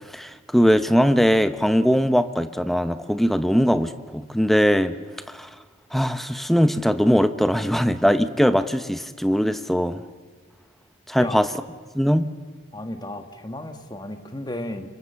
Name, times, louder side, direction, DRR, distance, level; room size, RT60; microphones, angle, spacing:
voice 1, 0.1-4.9 5.3-5.5 5.9-10.0 11.1-11.5 11.9-12.3, equal, ahead, 10 dB, 0.9 m, -20 dB
voice 2, 12.7-14.9, left 1 dB, 20° left, 6 dB, 1.9 m, -34 dB
30.0 x 25.0 x 7.0 m, 1.5 s
head